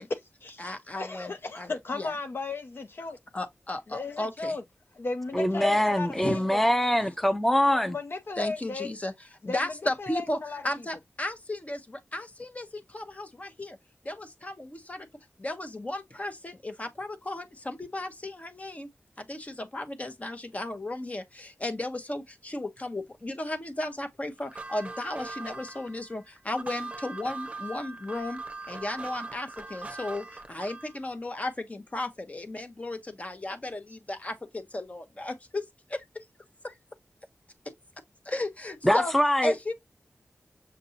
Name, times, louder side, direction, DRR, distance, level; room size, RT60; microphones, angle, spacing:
voice 1, 0.0-3.2 3.9-4.6 5.0-6.1 6.5-6.6 7.7-8.9 9.4-9.6 10.0-10.6, left 3 dB, 55° left, 0.5 m, -35 dB
voice 2, 0.6-2.1 3.3-4.6 5.5-5.8 6.2-6.4 7.0-7.1 8.4-9.1 9.4-10.4 10.6-13.8 14.0-15.1 15.4-18.9 19.2-28.4 28.7-36.3 36.6-36.8 38.2-39.1 39.4-39.7, left 1 dB, 30° left, 1.0 m, -35 dB
voice 3, 5.3-8.0 38.8-39.5, equal, 5° left, 0.6 m, -23 dB
sound 1, 24.4-31.0, right 3 dB, 30° right, 0.8 m, -40 dB
6.7 x 2.5 x 2.8 m
wide cardioid pair, 65°, 4 cm